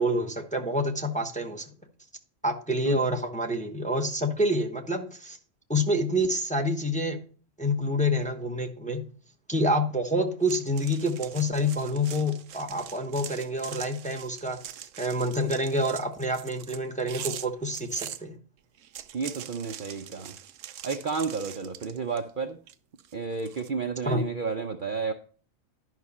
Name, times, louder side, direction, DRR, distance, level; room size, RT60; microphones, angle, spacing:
voice 1, 0.0-1.7 2.4-5.4 5.7-7.2 7.6-9.0 9.5-14.6 15.0-18.4 24.1-24.2, equal, 5° left, 5 dB, 0.9 m, -27 dB
sound 1, 10.4-18.2 18.8-22.3 22.7-23.7, right 11 dB, 70° right, 0.9 m, -42 dB
voice 2, 19.1-20.3 20.8-22.6 23.1-25.1, right 5 dB, 50° right, 5 dB, 0.7 m, -31 dB
11.0 x 5.7 x 4.2 m, 0.41 s
omnidirectional pair, 1.4 m